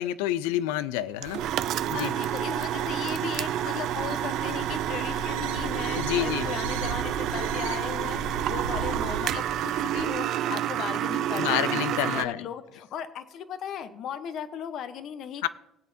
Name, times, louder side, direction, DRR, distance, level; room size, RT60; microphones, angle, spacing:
voice 1, 0.0-1.4 1.9-2.1 6.0-6.5 11.3-12.4 15.4-15.5, left 14 dB, 80° left, 16 dB, 0.4 m, -28 dB
sound 1, 1.2-12.2, right 11 dB, 65° right, 0.4 m, -29 dB
sound 2, 1.2-10.1, right 5 dB, 90° right, 0.8 m, -38 dB
voice 2, 1.9-15.5, left 8 dB, 60° left, 11 dB, 1.0 m, -37 dB
18.5 x 8.3 x 2.8 m, 0.90 s
hypercardioid pair, 65°, 0 cm